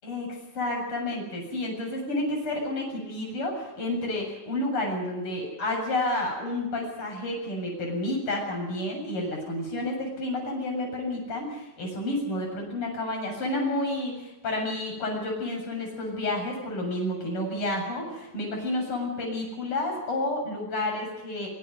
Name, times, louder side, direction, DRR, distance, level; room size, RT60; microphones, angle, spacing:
voice 1, 0.0-21.5, left 1 dB, 30° left, 0 dB, 8.3 m, -30 dB
24.5 x 24.0 x 5.5 m, 0.98 s
omnidirectional pair, 5.2 m